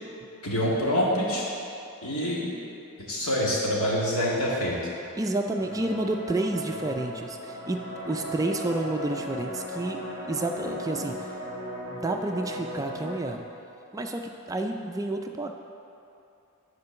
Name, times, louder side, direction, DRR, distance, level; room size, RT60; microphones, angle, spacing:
voice 1, 0.4-1.5 2.0-2.5 3.0-4.8, equal, 75° left, -5 dB, 2.1 m, -26 dB
voice 2, 5.2-10.0 10.3-11.4 11.9-13.4 13.9-15.5, right 2 dB, 15° right, 4 dB, 0.3 m, -30 dB
sound 1, 5.5-13.2, equal, 45° left, 2.0 m, -37 dB
9.8 x 4.5 x 6.8 m, 2.7 s
head